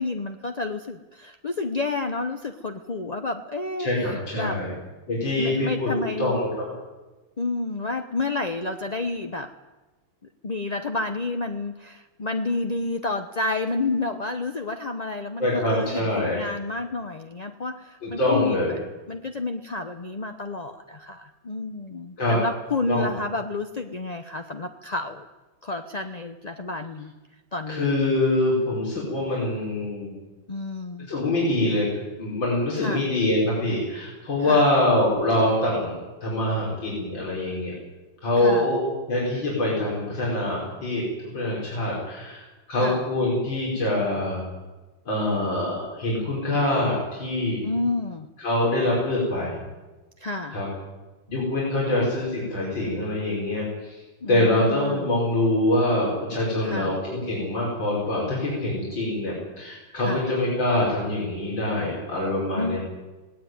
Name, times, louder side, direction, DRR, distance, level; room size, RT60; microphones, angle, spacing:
voice 1, 0.0-4.6 5.4-6.3 7.4-9.5 10.4-18.8 19.1-25.3 25.6-27.1 27.5-27.9 30.5-31.1 32.8-33.1 34.4-34.7 38.4-38.7 42.8-43.0 47.6-48.3 50.2-50.6 54.2-55.1 56.6-57.0 60.0-60.3 62.5-62.8, left 3 dB, 40° left, 6 dB, 0.6 m, -30 dB
voice 2, 3.8-4.7 5.1-5.9 6.2-6.7 15.4-16.4 18.0-18.7 22.2-22.4 22.9-23.1 27.7-30.1 31.1-31.9 32.2-37.7 38.2-41.0 41.3-44.4 45.1-47.6 48.4-49.5 50.5-50.7 51.3-54.0 54.3-62.8, left 1 dB, 75° left, -5 dB, 6.3 m, -24 dB
18.5 x 18.0 x 9.5 m, 1.2 s
omnidirectional pair, 2.1 m